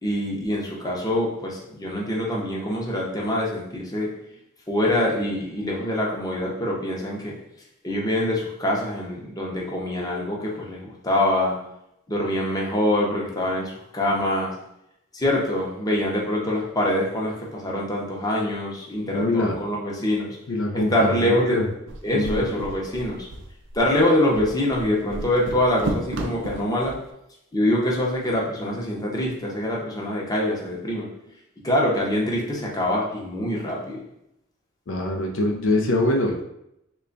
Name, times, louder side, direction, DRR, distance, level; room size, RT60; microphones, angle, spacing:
voice 1, 0.0-4.1 4.7-7.4 7.8-11.6 12.1-14.6 15.1-20.4 20.7-21.6 22.0-23.3 23.7-27.0 27.5-31.1 31.6-34.0, left 1 dB, 20° left, -3 dB, 0.7 m, -24 dB
voice 2, 19.1-19.6 20.5-21.6 22.1-22.5 34.9-36.4, left 1 dB, 70° left, 1 dB, 0.5 m, -23 dB
sound 1, 21.9-27.0, right 2 dB, 65° right, 0.4 m, -33 dB
3.3 x 2.3 x 3.9 m, 0.80 s
head